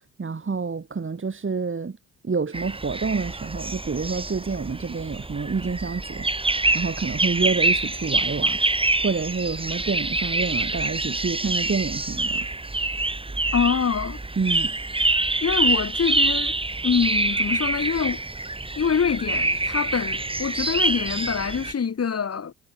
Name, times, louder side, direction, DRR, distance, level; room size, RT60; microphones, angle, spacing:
voice 1, 0.2-2.0 2.2-8.6 9.0-12.5 14.4-14.8, right 4 dB, 35° right, 3.5 m, -28 dB
sound 1, 2.5-21.7, right 2 dB, 15° right, 2.4 m, -26 dB
voice 2, 13.5-14.2 15.4-16.6 16.8-18.2 18.8-22.5, left 6 dB, 40° left, 2.3 m, -25 dB
hypercardioid pair, 50°, 37 cm